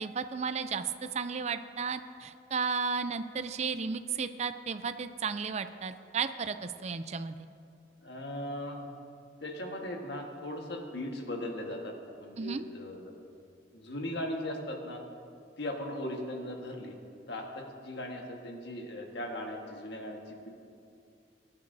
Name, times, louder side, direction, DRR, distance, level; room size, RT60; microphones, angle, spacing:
voice 1, 0.0-7.5 12.4-12.6, right 5 dB, 35° right, 10 dB, 0.4 m, -34 dB
voice 2, 8.0-8.9 9.4-11.9 12.2-13.1 13.7-15.0 15.6-17.0 17.3-20.5, left 1 dB, 65° left, 2 dB, 1.4 m, -38 dB
22.0 x 9.7 x 2.7 m, 2.5 s
head